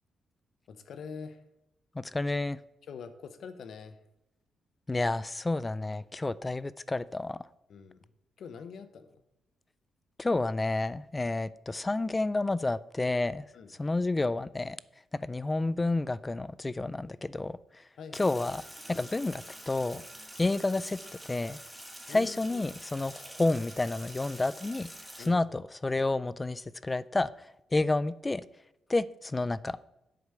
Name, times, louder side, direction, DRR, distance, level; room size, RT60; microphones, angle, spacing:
voice 1, 0.7-1.4 2.9-4.0 7.7-8.0 8.4-9.2 13.5-13.7 18.0-18.4 22.1-22.6 25.2-25.4, left 6 dB, 65° left, 0.9 m, -44 dB
voice 2, 2.0-2.6 4.9-7.4 10.2-13.4 13.8-14.8 15.2-17.6 18.1-18.6 18.9-20.0 20.4-21.0 21.2-21.6 22.1-24.9 25.3-27.3 27.7-28.4 28.9-29.8, left 2 dB, 20° left, 0.3 m, -30 dB
Sink (filling or washing), 18.1-25.3, equal, 5° right, 1.6 m, -47 dB
8.0 x 5.1 x 6.7 m
cardioid pair, 110°, 0 cm